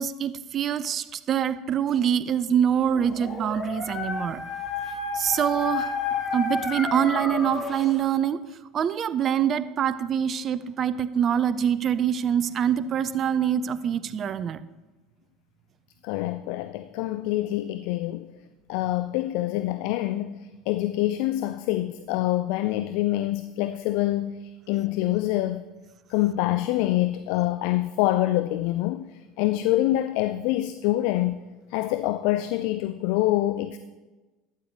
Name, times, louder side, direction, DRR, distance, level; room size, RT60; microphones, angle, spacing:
voice 1, 0.0-4.4 5.1-5.9 6.3-8.4 8.7-14.6, right 9 dB, 40° right, 0.5 m, -25 dB
Dog, 2.8-7.9, left 4 dB, 25° left, 2.2 m, -31 dB
sound 1, 6.8-8.1, left 1 dB, 5° left, 2.2 m, -45 dB
voice 2, 16.0-18.3 18.7-25.6 26.1-31.4 31.7-33.8, left 15 dB, 60° left, 0.4 m, -26 dB
12.0 x 9.5 x 3.4 m
figure-of-eight pair, 70°, 0 cm